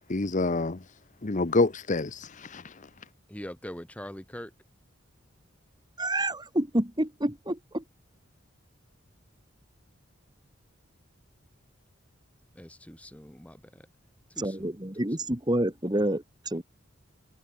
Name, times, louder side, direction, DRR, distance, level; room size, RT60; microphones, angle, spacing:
voice 1, 0.1-0.8 1.2-2.7, left 3 dB, 40° left, 0.9 m, -27 dB
voice 2, 3.3-4.5 12.5-13.8 14.4-14.7, equal, 5° left, 1.6 m, -42 dB
voice 3, 6.0-7.8 14.4-16.6, right 1 dB, 20° right, 2.8 m, -28 dB
head